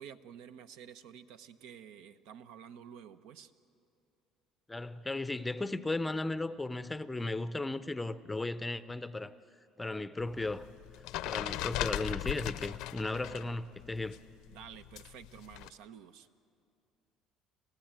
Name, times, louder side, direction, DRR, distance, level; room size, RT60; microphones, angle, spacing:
voice 1, 0.0-3.5 14.5-16.3, right 8 dB, 85° right, 11 dB, 0.9 m, -50 dB
voice 2, 4.7-9.3 9.8-10.7 11.2-14.2, left 2 dB, 10° left, 14 dB, 0.5 m, -36 dB
sound 1, 10.2-13.5 13.8-15.7, left 14 dB, 80° left, 0.6 m, -38 dB
27.5 x 15.5 x 8.9 m, 2.5 s
cardioid pair, 130°, 0 cm